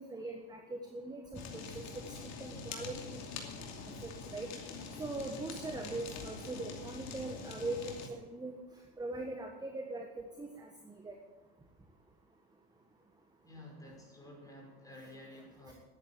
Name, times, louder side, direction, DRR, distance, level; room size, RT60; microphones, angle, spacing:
voice 1, 0.0-3.2 4.0-4.5 5.0-8.6 9.0-11.2 15.7-15.8, right 2 dB, 10° right, 3 dB, 1.4 m, -41 dB
Fire, 1.3-8.1, left 4 dB, 50° left, 2.7 m, -45 dB
voice 2, 13.4-15.7, left 1 dB, 10° left, -1 dB, 5.6 m, -52 dB
11.5 x 10.0 x 8.5 m, 1.1 s
supercardioid pair, 115°, 34 cm